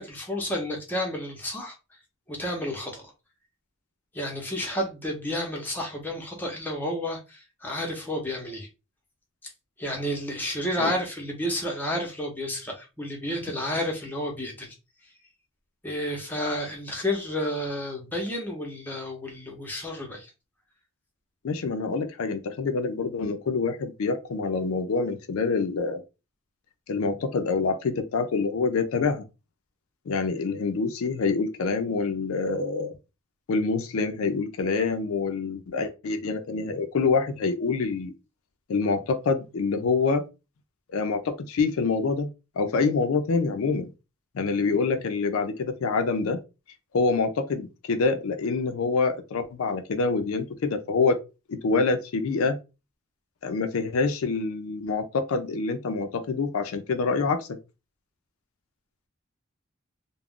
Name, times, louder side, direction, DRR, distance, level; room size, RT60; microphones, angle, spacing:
voice 1, 0.0-1.8 2.3-3.0 4.1-8.7 9.8-14.7 15.8-20.3, left 1 dB, 10° left, 0.7 m, -31 dB
voice 2, 21.4-26.0 26.9-29.3 30.1-32.9 33.5-38.1 38.7-40.2 40.9-42.3 42.6-43.9 44.3-46.4 46.9-51.2 51.5-52.6 53.4-57.6, left 4 dB, 85° left, 0.4 m, -26 dB
2.4 x 2.1 x 3.5 m
head